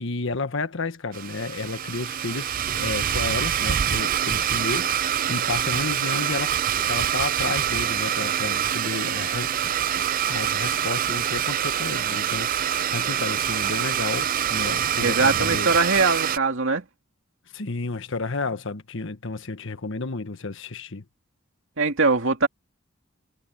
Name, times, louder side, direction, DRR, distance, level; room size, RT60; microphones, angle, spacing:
voice 1, 0.0-15.7 17.5-21.0, left 3 dB, 65° left, 1.4 m, -32 dB
Domestic sounds home sounds, 1.1-16.4, right 10 dB, 45° right, 0.4 m, -25 dB
voice 2, 15.0-16.8 21.8-22.5, right 4 dB, 65° right, 2.8 m, -21 dB
head